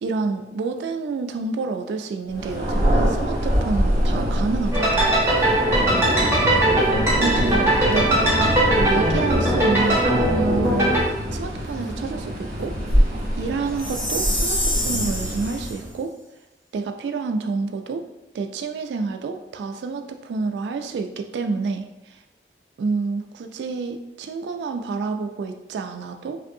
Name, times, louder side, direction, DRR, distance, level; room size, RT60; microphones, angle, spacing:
voice 1, 0.0-5.2 7.2-11.0 11.3-16.1 16.7-18.0 18.3-22.2 22.8-26.4, right 4 dB, 80° right, 7 dB, 0.3 m, -28 dB
Thunder, 2.3-16.0, equal, 45° right, 1.3 m, -24 dB
sound 1, 4.7-11.0, right 1 dB, 15° right, 1.0 m, -20 dB
Chime, 13.8-15.8, left 1 dB, 10° left, 0.9 m, -27 dB
4.9 x 2.6 x 2.6 m, 0.94 s
head